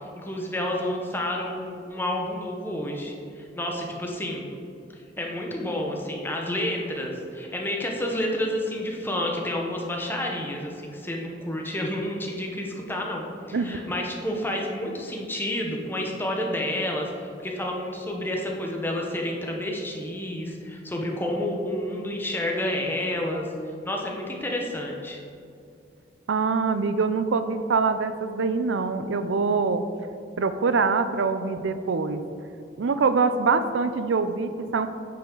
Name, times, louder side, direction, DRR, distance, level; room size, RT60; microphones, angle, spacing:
voice 1, 0.2-4.5 4.9-23.4 23.8-25.2, left 1 dB, 10° left, 0 dB, 0.9 m, -30 dB
voice 2, 26.3-29.8 30.4-32.2 32.8-34.9, right 4 dB, 85° right, 11 dB, 0.5 m, -24 dB
9.3 x 5.7 x 3.8 m, 2.5 s
head